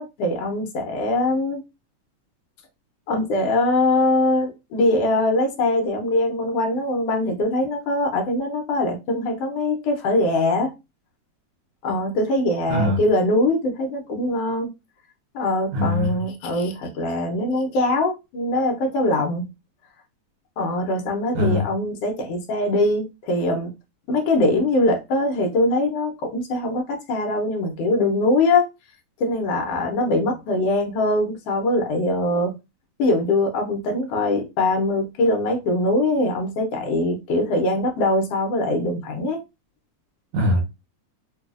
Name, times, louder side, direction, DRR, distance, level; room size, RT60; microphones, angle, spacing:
voice 1, 0.0-1.6 3.1-10.7 11.8-14.7 15.3-19.5 20.6-23.7 24.1-28.6 29.2-32.5 33.0-39.4, left 2 dB, 75° left, 1.5 m, -22 dB
voice 2, 12.7-13.0 15.7-16.2 21.3-21.7 40.3-40.6, left 1 dB, 75° right, 2.1 m, -21 dB
4.7 x 2.4 x 2.4 m
omnidirectional pair, 3.5 m